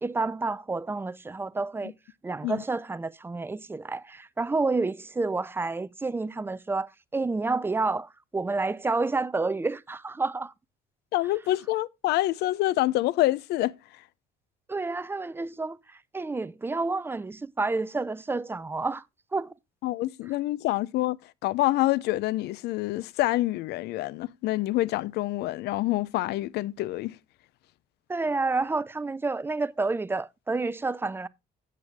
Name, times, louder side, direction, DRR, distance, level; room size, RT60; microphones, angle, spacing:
voice 1, 0.0-1.9 2.2-10.5 14.7-19.0 19.3-19.5 28.1-31.3, right 3 dB, 15° right, 0.4 m, -29 dB
voice 2, 11.1-13.7 19.8-21.2 21.4-27.2, left 16 dB, 75° left, 0.5 m, -26 dB
9.5 x 8.1 x 3.3 m
cardioid pair, 110°, 17 cm